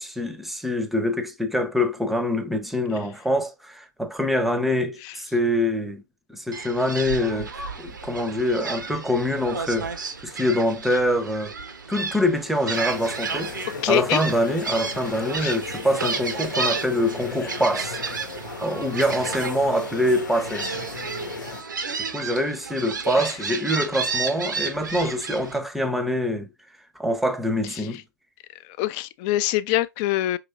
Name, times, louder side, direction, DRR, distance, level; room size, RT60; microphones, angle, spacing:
voice 1, 0.0-6.0 6.3-7.5 7.8-11.5 11.9-13.5 13.9-18.0 18.6-20.7 22.0-26.5 27.0-28.0, left 1 dB, ahead, 0.7 m, -25 dB
Gull seagull, 6.5-25.6, right 5 dB, 75° right, 0.8 m, -32 dB
sound 1, 12.7-21.6, left 4 dB, 70° left, 0.9 m, -36 dB
voice 2, 13.8-14.2 15.4-15.5 23.1-23.4 24.9-25.1 27.6-28.0 28.5-30.4, left 15 dB, 35° left, 0.4 m, -26 dB
5.7 x 3.1 x 2.5 m
figure-of-eight pair, 105°, 10 cm